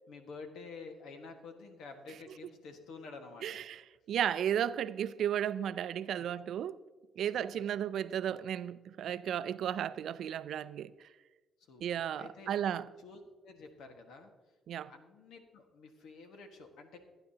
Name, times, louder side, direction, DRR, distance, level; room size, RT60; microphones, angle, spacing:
voice 1, 0.1-3.6 6.0-6.3 7.2-7.4 11.6-11.8 12.2-12.5 13.0-14.3 14.8-17.0, left 4 dB, 80° left, 1.5 m, -50 dB
voice 2, 3.4-3.8 4.1-6.8 7.2-10.9 11.8-12.9 14.7-14.9, right 9 dB, 70° right, 0.4 m, -34 dB
17.0 x 9.7 x 2.8 m
cardioid pair, 90°, 0 cm